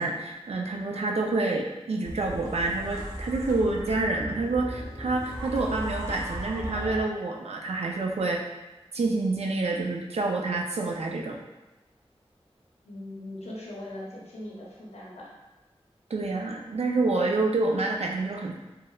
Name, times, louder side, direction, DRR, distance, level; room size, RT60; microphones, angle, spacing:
voice 1, 0.0-8.4 8.9-11.4 16.1-18.5, right 3 dB, 75° right, 0 dB, 0.4 m, -28 dB
sound 1, 2.0-7.0, equal, 25° right, 0.5 m, -37 dB
voice 2, 12.8-15.3, left 1 dB, 85° left, -5 dB, 0.7 m, -40 dB
3.0 x 2.0 x 2.2 m, 1.1 s
wide cardioid pair, 70°, 11 cm